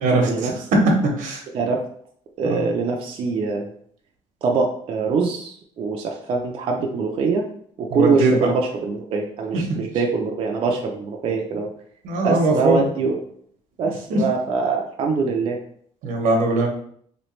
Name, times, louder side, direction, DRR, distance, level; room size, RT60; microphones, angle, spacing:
voice 1, 0.0-1.4 2.4-2.6 7.9-8.5 9.5-9.8 12.0-12.9 14.1-14.2 16.0-16.7, right 2 dB, 80° right, 1 dB, 1.0 m, -20 dB
voice 2, 2.4-3.7 4.4-7.4 7.8-11.7 12.2-13.2 13.8-15.6, right 4 dB, 45° right, 1 dB, 0.4 m, -23 dB
3.2 x 3.1 x 3.1 m, 0.63 s
cardioid pair, 145°, 13 cm